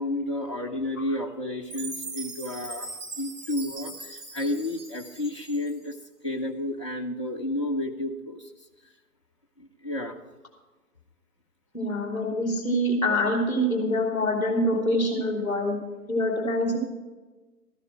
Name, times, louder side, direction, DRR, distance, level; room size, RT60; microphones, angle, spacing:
voice 1, 0.0-6.0 6.2-8.5 9.6-10.2, left 1 dB, 20° left, -2 dB, 0.7 m, -31 dB
Chime, 1.7-5.9, right 3 dB, 50° right, 2.0 m, -40 dB
voice 2, 11.7-16.8, equal, 5° left, 2 dB, 2.4 m, -25 dB
14.0 x 11.0 x 4.5 m, 1.2 s
figure-of-eight pair, 150°, 46 cm